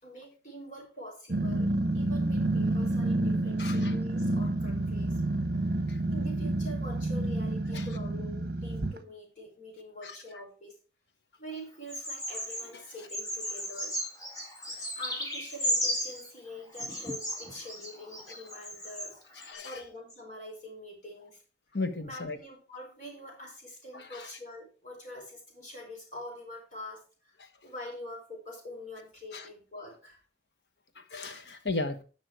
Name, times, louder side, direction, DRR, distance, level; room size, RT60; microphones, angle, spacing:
voice 1, 0.0-1.7 1.9-5.2 5.9-10.8 11.4-14.0 14.7-21.4 22.0-30.2, left 1 dB, 45° left, 4.5 m, -45 dB
Growling, 1.3-9.0, right 2 dB, 55° right, 0.9 m, -29 dB
voice 2, 3.6-3.9 5.9-6.0 7.7-7.8 10.0-10.2 19.5-19.8 21.7-22.4 23.9-24.3 29.3-29.4 31.0-31.9, left 3 dB, 75° left, 1.2 m, -35 dB
Bird vocalization bird call bird song, 11.9-12.7 13.1-16.3 16.7-19.1 19.4-19.5, equal, 20° left, 2.0 m, -34 dB
10.5 x 6.1 x 4.6 m
head